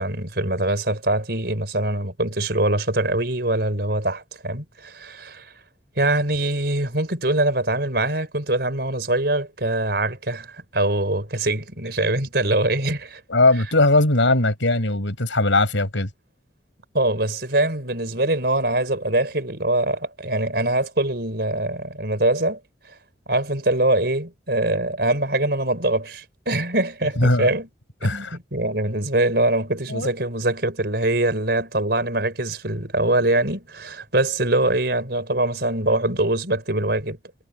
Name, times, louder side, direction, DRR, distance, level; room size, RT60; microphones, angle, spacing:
voice 1, 0.0-5.4 6.0-13.2 16.9-22.6 23.3-27.7 28.0-37.2, right 1 dB, 55° right, 5.1 m, -23 dB
voice 2, 13.3-16.1 27.2-27.5 28.0-28.4 29.9-30.1, left 2 dB, 85° left, 5.3 m, -19 dB
head